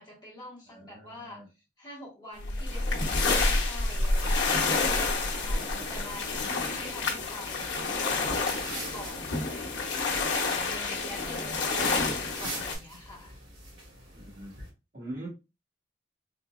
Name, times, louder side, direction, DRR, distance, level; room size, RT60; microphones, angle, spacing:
voice 1, 0.0-1.4 1.8-10.0 10.3-13.4, left 1 dB, 25° left, 1.3 m, -46 dB
voice 2, 0.7-1.5 3.9-4.9 5.5-6.1 10.5-11.0 14.1-14.6 14.9-15.3, right 1 dB, 50° right, 1.5 m, -45 dB
sound 1, 2.4-12.7, left 3 dB, 85° left, 0.9 m, -29 dB
sound 2, 3.7-14.7, right 1 dB, 75° right, 1.7 m, -45 dB
4.0 x 2.8 x 2.3 m
head